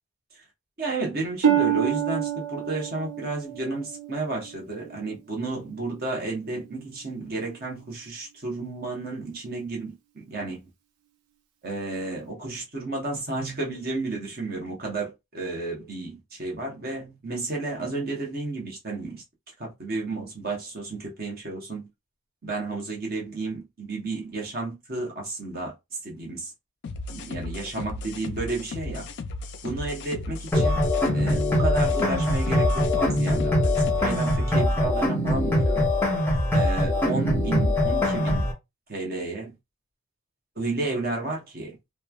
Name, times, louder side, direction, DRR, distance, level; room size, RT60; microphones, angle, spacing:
voice 1, 0.8-10.6 11.6-19.2 19.6-21.9 22.4-26.5 27.1-29.1 29.6-30.8 31.1-35.9 36.5-38.5 38.9-39.5 40.6-41.8, right 3 dB, 40° right, 0.9 m, -32 dB
Harp, 1.4-5.2 5.7-6.1 6.8-6.9, right 9 dB, 90° right, 0.6 m, -27 dB
sound 1, 26.8-34.4, left 2 dB, 50° left, 0.3 m, -36 dB
sound 2, 30.5-38.5, left 1 dB, 10° left, 0.6 m, -23 dB
3.1 x 2.1 x 2.3 m
head